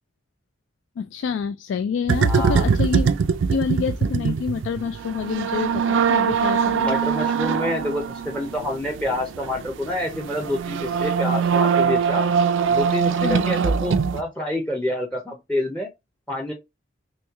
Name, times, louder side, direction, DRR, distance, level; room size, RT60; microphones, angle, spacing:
voice 1, 1.0-3.2 3.5-7.0 13.2-13.5, left 6 dB, 80° left, 0.3 m, -27 dB
sound 1, 2.1-14.2, right 6 dB, 85° right, 0.4 m, -22 dB
voice 2, 2.3-2.7 6.7-12.2 12.7-15.9 16.3-16.5, left 1 dB, 5° left, 0.5 m, -27 dB
3.1 x 3.0 x 3.4 m
head